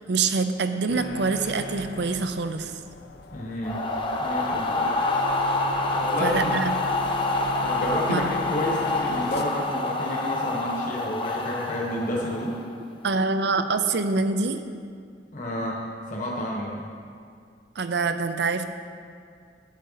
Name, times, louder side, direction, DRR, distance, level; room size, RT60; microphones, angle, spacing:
voice 1, 0.0-2.7 6.2-6.7 8.1-8.3 13.0-14.6 17.8-18.6, right 4 dB, 65° right, 9 dB, 0.6 m, -25 dB
sound 1, 0.9-9.4, left 3 dB, 60° left, 0.6 m, -37 dB
voice 2, 3.3-3.8 4.2-4.9 5.9-6.5 7.6-12.6 15.3-15.8 16.1-16.8, left 1 dB, 45° left, -3 dB, 1.3 m, -30 dB
sound 2, 3.6-12.7, left 2 dB, 30° left, 0.8 m, -27 dB
10.5 x 9.6 x 4.1 m, 2.2 s
head